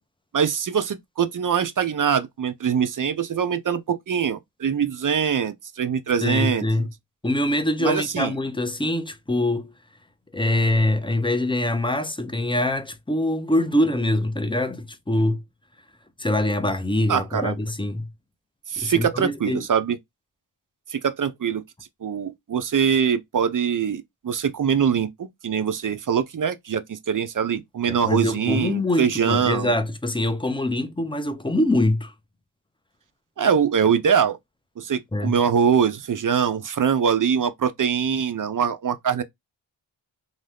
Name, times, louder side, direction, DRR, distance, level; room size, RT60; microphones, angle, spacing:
voice 1, 0.3-6.7 7.8-8.3 17.1-17.6 18.7-20.0 20.9-21.6 22.0-29.7 33.4-34.4 34.8-39.2, right 7 dB, 45° right, 0.5 m, -23 dB
voice 2, 6.2-6.9 7.2-9.7 10.3-15.4 16.2-18.1 18.8-19.7 27.9-32.1 35.1-35.4, left 1 dB, 10° left, 0.4 m, -24 dB
2.6 x 2.3 x 3.3 m
wide cardioid pair, 70°, 46 cm